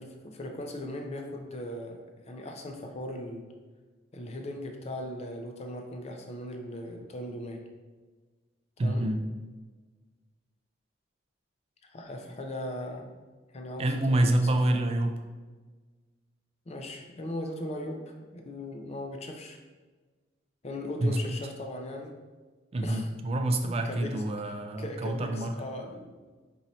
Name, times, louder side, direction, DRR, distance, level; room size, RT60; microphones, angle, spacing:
voice 1, 0.0-2.0 2.2-3.4 4.1-7.6 8.8-9.1 11.8-13.2 13.5-14.9 16.7-19.6 20.6-22.1 22.8-23.1 23.7-24.2 24.8-26.2, left 1 dB, 35° left, 3 dB, 0.5 m, -38 dB
voice 2, 8.8-9.2 13.8-15.1 21.0-21.3 22.7-25.5, right 1 dB, 30° right, 5 dB, 0.3 m, -27 dB
5.3 x 2.7 x 3.0 m, 1.3 s
head